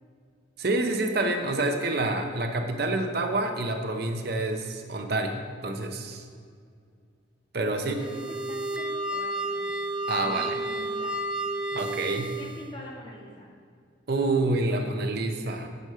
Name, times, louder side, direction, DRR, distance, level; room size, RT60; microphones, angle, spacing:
voice 1, 0.6-6.3 7.5-8.0 10.1-10.6 11.7-12.3 14.1-15.8, right 2 dB, 55° right, 4 dB, 0.7 m, -28 dB
voice 2, 7.8-9.7 10.1-11.2 12.3-13.5, left 1 dB, 25° left, -4 dB, 2.1 m, -44 dB
sound 1, 7.8-12.7, right 1 dB, 5° right, 0.5 m, -31 dB
9.3 x 5.3 x 6.7 m, 2.2 s
head